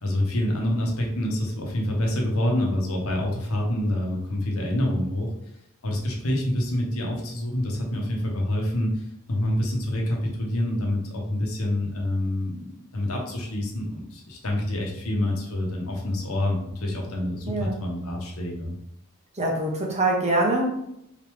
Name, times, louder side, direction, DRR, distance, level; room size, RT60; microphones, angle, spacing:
voice 1, 0.0-5.3 5.8-18.8, left 1 dB, 65° left, 0 dB, 1.0 m, -27 dB
voice 2, 17.5-17.8 19.4-20.6, right 2 dB, 30° right, -1 dB, 0.9 m, -24 dB
3.9 x 3.1 x 3.5 m, 0.80 s
head